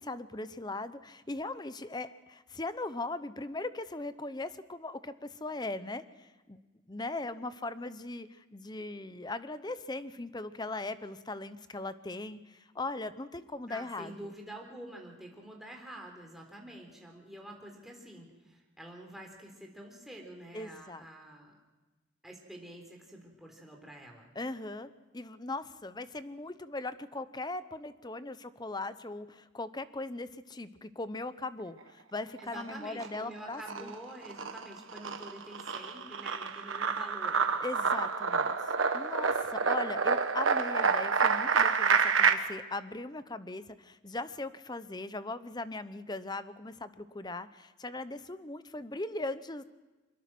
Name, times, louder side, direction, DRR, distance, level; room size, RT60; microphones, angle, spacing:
voice 1, 0.0-6.6 6.9-14.3 20.5-21.0 24.3-33.9 37.6-38.5 38.9-49.6, left 2 dB, 20° left, 13 dB, 0.8 m, -39 dB
voice 2, 13.7-21.6 22.2-24.3 32.4-37.4, right 1 dB, ahead, 0 dB, 3.7 m, -47 dB
sound 1, 32.4-33.2 33.5-42.3, right 5 dB, 85° right, 1.4 m, -28 dB
24.5 x 21.5 x 6.1 m, 1.2 s
head